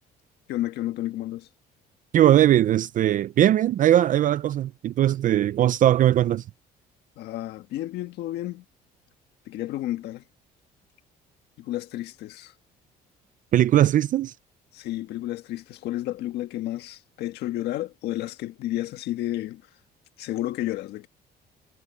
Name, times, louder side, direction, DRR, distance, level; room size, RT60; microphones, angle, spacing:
voice 1, 0.5-1.5 7.2-8.6 9.5-10.2 11.6-12.5 14.7-19.6 20.2-21.1, left 14 dB, 80° left, 1.4 m, -31 dB
voice 2, 2.1-6.4 13.5-14.3, right 12 dB, 50° right, 0.5 m, -20 dB
cardioid pair, 110°, 17 cm